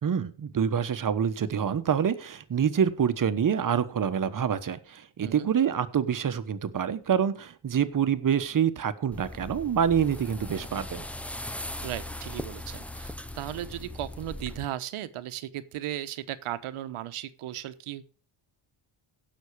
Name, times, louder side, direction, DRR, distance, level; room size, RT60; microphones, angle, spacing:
voice 1, 0.0-11.0, right 8 dB, 40° right, 11 dB, 1.2 m, -26 dB
sound 1, 9.1-14.7, left 1 dB, 5° left, 0.6 m, -39 dB
voice 2, 11.8-18.0, right 12 dB, 80° right, 12 dB, 1.2 m, -36 dB
16.5 x 6.5 x 4.8 m, 0.39 s
cardioid pair, 110°, 50 cm